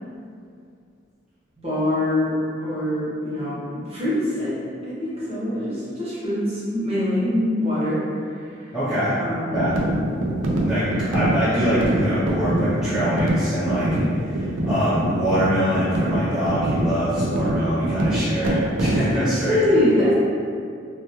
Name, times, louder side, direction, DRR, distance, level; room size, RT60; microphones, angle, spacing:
voice 1, 1.6-2.4 2.6-8.0 9.2-9.5 19.5-20.1, left 1 dB, 30° right, -10 dB, 0.8 m, -23 dB
voice 2, 8.7-9.2 9.5-9.8 10.6-10.9 11.1-13.9 14.2-19.6, equal, 5° right, -14 dB, 0.4 m, -24 dB
sound 1, 9.5-19.2, right 1 dB, 90° right, 0.4 m, -24 dB
2.2 x 2.2 x 2.7 m, 2.3 s
head